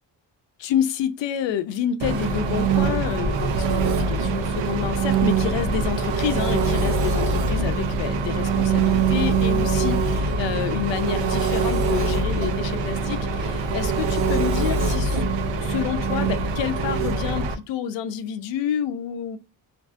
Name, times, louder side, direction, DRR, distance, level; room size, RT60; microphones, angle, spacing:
voice 1, 0.6-15.2 15.6-19.4, left 9 dB, 90° left, 0.5 m, -28 dB
Engine, 2.0-17.5, right 4 dB, 85° right, 0.6 m, -23 dB
2.6 x 2.5 x 2.3 m
cardioid pair, 115°, 43 cm